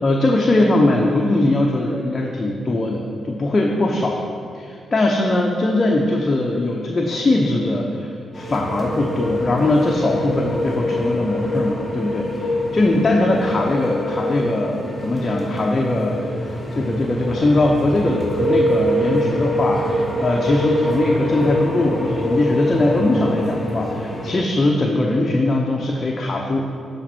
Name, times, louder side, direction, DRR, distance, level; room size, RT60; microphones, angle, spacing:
voice 1, 0.0-4.2 4.5-26.7, left 2 dB, 40° left, -1 dB, 0.9 m, -20 dB
sound 1, 8.3-24.3, equal, ahead, 2.2 m, -25 dB
9.8 x 5.3 x 4.4 m, 2.3 s
hypercardioid pair, 45°, 0 cm